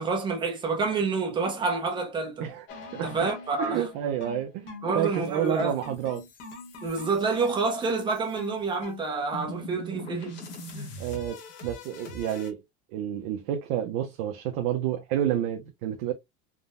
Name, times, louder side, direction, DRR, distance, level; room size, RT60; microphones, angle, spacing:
voice 1, 0.0-2.5 3.0-3.8 4.8-5.7 6.8-10.4 10.7-10.9, right 4 dB, 15° right, 0.6 m, -28 dB
sound 1, 2.7-12.5, left 1 dB, 40° left, 1.0 m, -42 dB
voice 2, 3.6-6.2 11.0-12.6 12.9-16.1, right 10 dB, 60° right, 0.6 m, -29 dB
3.6 x 2.1 x 2.4 m
cardioid pair, 170°, 29 cm